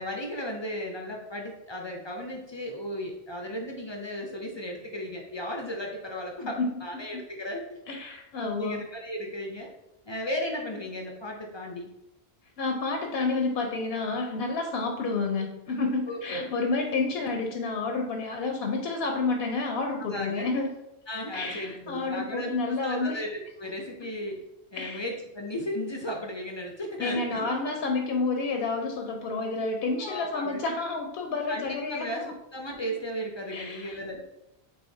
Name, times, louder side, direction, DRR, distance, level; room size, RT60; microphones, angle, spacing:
voice 1, 0.0-7.8 8.4-9.7 10.1-11.9 16.1-16.5 20.0-20.5 21.1-22.5 22.8-24.4 24.7-27.5 30.0-30.6 31.5-32.2 32.5-34.2, equal, 45° left, 1 dB, 0.3 m, -35 dB
voice 2, 7.9-8.8 12.6-20.7 21.3-23.2 24.8-25.0 27.0-32.3 33.5-34.0, left 3 dB, 75° left, 3 dB, 0.8 m, -29 dB
4.8 x 2.9 x 2.6 m, 0.90 s
omnidirectional pair, 1.1 m